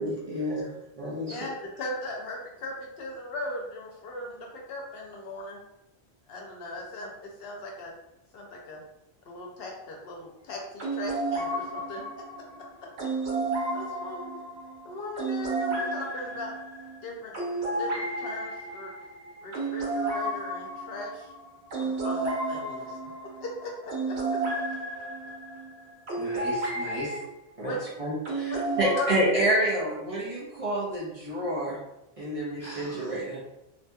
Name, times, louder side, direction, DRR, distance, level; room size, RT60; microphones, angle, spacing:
voice 1, 0.0-0.7 1.0-1.4 27.6-31.8 32.2-33.4, right 1 dB, 40° right, -7 dB, 0.6 m, -28 dB
voice 2, 1.3-5.6 6.3-7.9 8.3-8.8 9.3-12.0 13.7-14.3 14.8-16.5 17.0-17.3 17.8-18.9 19.4-21.3 21.8-23.0 23.4-24.4 27.6-27.8 28.5-28.6 28.9-29.1, left 2 dB, 70° left, -1 dB, 0.8 m, -38 dB
sound 1, 10.8-27.2 28.3-29.0, right 2 dB, 90° right, 1.1 m, -32 dB
voice 3, 26.2-27.2 32.6-33.4, left 1 dB, 15° left, -6 dB, 0.8 m, -39 dB
2.7 x 2.5 x 2.2 m, 0.92 s
omnidirectional pair, 1.1 m